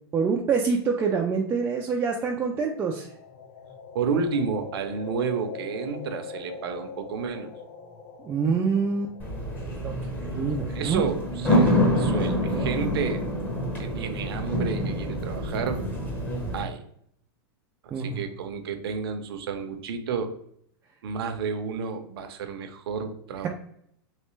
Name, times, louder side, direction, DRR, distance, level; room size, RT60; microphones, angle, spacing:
voice 1, 0.1-3.1 8.2-9.1 9.8-9.9 10.3-11.1 14.2-14.3 17.9-18.2, right 5 dB, 15° right, -1 dB, 0.3 m, -26 dB
sound 1, 2.7-10.8, left 5 dB, 65° left, 0.8 m, -43 dB
voice 2, 3.9-7.5 10.7-13.3 13.8-15.8 16.5-16.8 17.8-20.3 21.0-23.5, right 5 dB, 75° right, 7 dB, 0.6 m, -31 dB
sound 2, 9.2-16.6, equal, 15° left, 0.8 m, -26 dB
3.2 x 3.2 x 3.1 m, 0.69 s
supercardioid pair, 145°, 13 cm